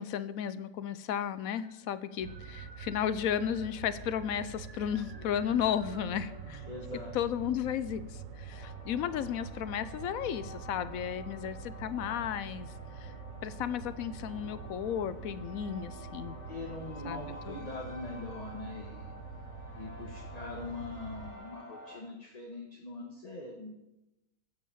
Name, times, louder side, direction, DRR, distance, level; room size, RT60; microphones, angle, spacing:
voice 1, 0.0-6.7 7.1-13.1 13.4-16.4 17.0-17.2 17.5-17.6, left 9 dB, 70° left, 14 dB, 1.0 m, -34 dB
sound 1, 1.2-18.3, right 4 dB, 35° right, 0.7 m, -55 dB
sound 2, 2.2-21.3, right 6 dB, 65° right, 1.3 m, -46 dB
voice 2, 6.6-7.2 16.5-19.1 19.7-23.7, left 2 dB, 25° left, 1 dB, 1.3 m, -42 dB
sound 3, 8.5-22.0, left 2 dB, 50° left, 2.1 m, -51 dB
14.5 x 5.6 x 7.2 m, 0.93 s
omnidirectional pair, 1.6 m